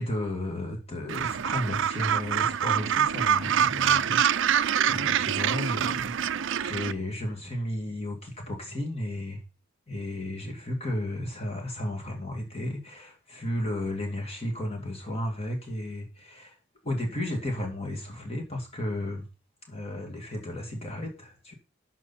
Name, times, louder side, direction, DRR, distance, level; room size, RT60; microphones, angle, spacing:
voice 1, 0.0-4.5 4.8-9.4 9.9-16.6 16.8-19.2 19.7-21.5, left 1 dB, 30° left, 2.6 m, -33 dB
Gull seagull, 1.1-6.9, right 9 dB, 65° right, 0.5 m, -25 dB
13.0 x 6.5 x 4.3 m
head